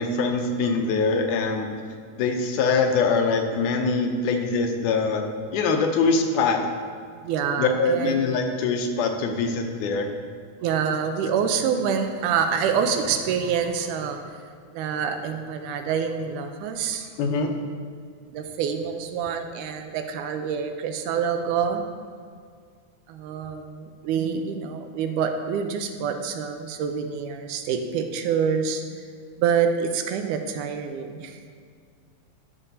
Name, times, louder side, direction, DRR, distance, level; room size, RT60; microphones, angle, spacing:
voice 1, 0.0-1.7 2.2-5.2 5.5-6.6 7.6-10.1 17.2-17.5, left 4 dB, 85° left, 4 dB, 2.2 m, -23 dB
voice 2, 7.2-8.2 10.6-14.2 14.7-17.1 18.3-21.8 23.1-29.0 29.4-31.4, right 7 dB, 90° right, 6 dB, 2.1 m, -26 dB
13.0 x 5.3 x 2.7 m, 2.1 s
omnidirectional pair, 3.6 m